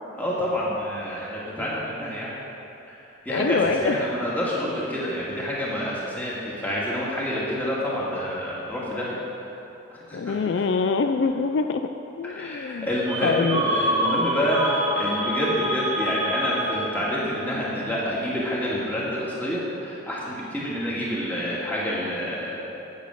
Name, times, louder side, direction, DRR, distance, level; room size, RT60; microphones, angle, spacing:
voice 1, 0.1-2.3 2.9-9.4 10.1-10.4 12.2-22.7, equal, 10° left, -7 dB, 2.1 m, -28 dB
voice 2, 3.3-4.0 10.1-11.9 12.2-12.9 13.2-13.6, left 4 dB, 60° left, 7 dB, 0.4 m, -24 dB
sound 1, 13.0-17.2, equal, 20° right, 1.7 m, -26 dB
8.9 x 8.3 x 6.4 m, 3.0 s
head